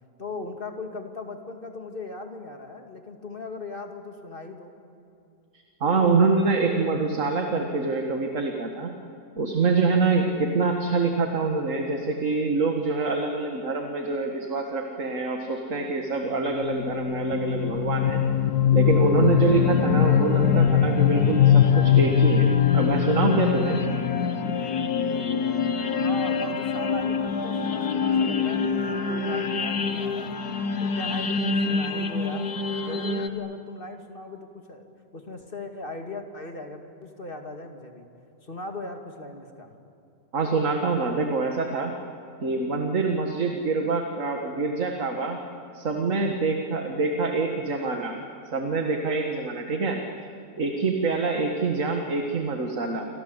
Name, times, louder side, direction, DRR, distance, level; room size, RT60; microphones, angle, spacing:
voice 1, 0.2-4.7 25.9-30.3 30.8-32.5 32.8-34.9 35.1-38.1 38.4-39.7, left 3 dB, 35° left, 4 dB, 2.3 m, -38 dB
voice 2, 5.8-9.0 9.4-18.3 18.7-23.8 40.3-42.0 42.4-45.4 45.7-48.2 48.5-50.0 50.6-53.1, right 4 dB, 55° right, 3 dB, 2.1 m, -25 dB
sound 1, 16.5-33.3, left 7 dB, 80° left, 1.9 m, -23 dB
28.5 x 25.5 x 8.1 m, 2.5 s
omnidirectional pair, 1.7 m